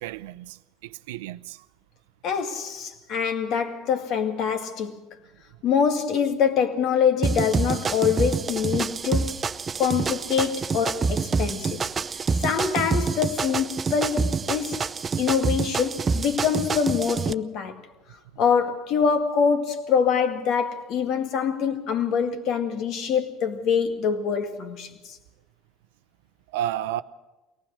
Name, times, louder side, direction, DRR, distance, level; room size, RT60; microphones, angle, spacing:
voice 1, 0.0-0.6 0.8-1.6 26.5-27.0, right 12 dB, 75° right, 0.6 m, -31 dB
voice 2, 2.2-5.0 5.6-9.3 9.8-11.9 12.4-14.9 15.2-17.8 18.4-25.2, left 7 dB, 60° left, 2.1 m, -24 dB
sound 1, 7.2-17.3, right 5 dB, 30° right, 0.7 m, -27 dB
22.5 x 18.5 x 6.5 m
hypercardioid pair, 70°, 0 cm